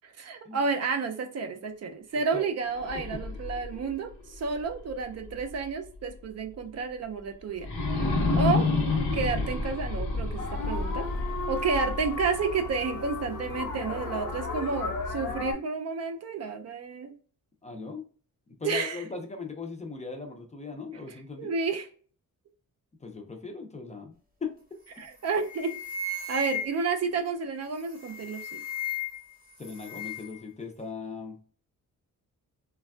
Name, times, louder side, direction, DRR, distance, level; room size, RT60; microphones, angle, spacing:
voice 1, 0.0-7.7 8.4-8.7 9.1-11.1 11.5-17.1 18.6-19.0 21.4-21.9 25.0-25.7 26.3-28.6, right 4 dB, 50° right, 6 dB, 0.4 m, -31 dB
voice 2, 2.1-2.5 2.9-3.0 17.6-18.0 18.5-21.5 23.0-24.1 24.4-24.5 29.6-31.4, left 4 dB, 20° left, 3 dB, 0.4 m, -39 dB
sound 1, 2.7-5.7 6.1-6.2 7.6-12.7, left 3 dB, 60° left, 0.8 m, -30 dB
sound 2, 10.4-15.5, left 3 dB, 90° left, 0.9 m, -34 dB
sound 3, 24.9-25.1 25.4-27.0 27.8-29.3 29.6-30.4, left 3 dB, 25° right, 0.8 m, -35 dB
3.2 x 2.3 x 2.3 m, 0.42 s
wide cardioid pair, 135°, 34 cm